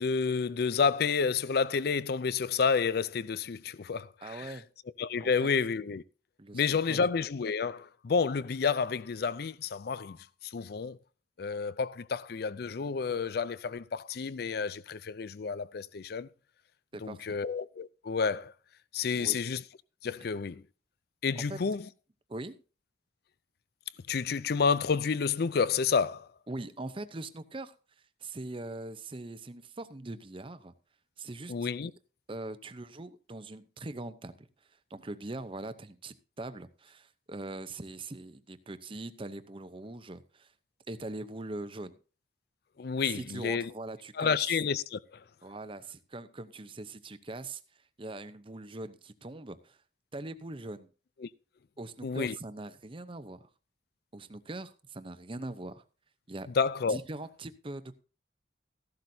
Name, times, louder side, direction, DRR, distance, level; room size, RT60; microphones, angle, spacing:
voice 1, 0.0-4.6 5.0-6.0 6.5-10.2 10.4-11.0 11.4-16.3 17.0-18.5 18.9-19.6 20.0-20.6 21.2-21.9 24.1-26.3 31.5-31.9 42.8-43.7 44.2-45.2 51.2-51.3 52.0-52.4 56.6-57.0, left 5 dB, 60° left, 0.4 m, -30 dB
voice 2, 4.2-4.7 5.2-5.5 6.4-7.0 16.9-17.2 19.2-19.4 21.4-21.6 22.3-22.6 26.5-27.7 28.2-30.7 31.2-31.7 32.3-34.5 34.9-40.5 40.9-42.0 43.1-44.4 45.4-47.6 48.0-49.8 50.1-50.9 51.8-53.5 54.1-55.8 56.3-56.5 56.9-57.9, right 2 dB, 30° right, 0.7 m, -41 dB
15.0 x 12.0 x 2.7 m
head